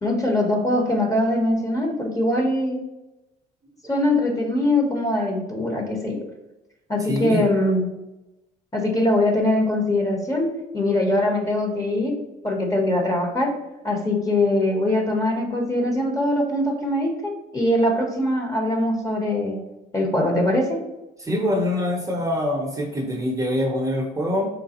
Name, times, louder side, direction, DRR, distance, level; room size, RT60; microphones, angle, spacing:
voice 1, 0.0-2.8 3.9-6.2 6.9-7.8 8.7-10.5 10.7-12.1 12.4-13.5 13.8-19.6 19.9-20.8, left 1 dB, 20° left, 2 dB, 1.1 m, -22 dB
voice 2, 7.1-7.5 21.2-24.5, left 1 dB, 20° right, 1 dB, 0.8 m, -24 dB
4.6 x 3.8 x 2.9 m, 0.98 s
cardioid pair, 110°, 17 cm